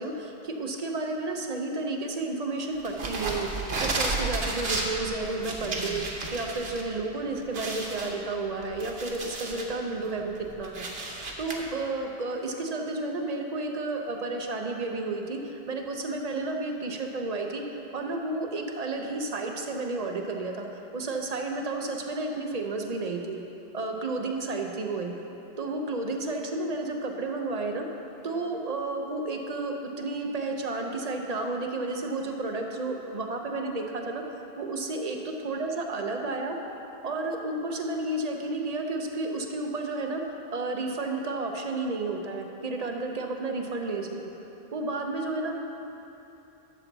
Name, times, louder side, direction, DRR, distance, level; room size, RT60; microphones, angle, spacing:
voice 1, 0.0-10.9 11.4-23.4 23.7-25.1 25.6-27.8 28.2-34.2 34.6-36.6 37.0-40.2 40.5-44.1 44.7-45.5, right 2 dB, 40° right, 3 dB, 0.8 m, -32 dB
sound 1, 2.8-6.8 7.1-7.2 7.5-9.7 10.2-11.6, right 3 dB, 65° right, 1.2 m, -32 dB
12.0 x 7.1 x 4.0 m, 3.0 s
omnidirectional pair, 1.1 m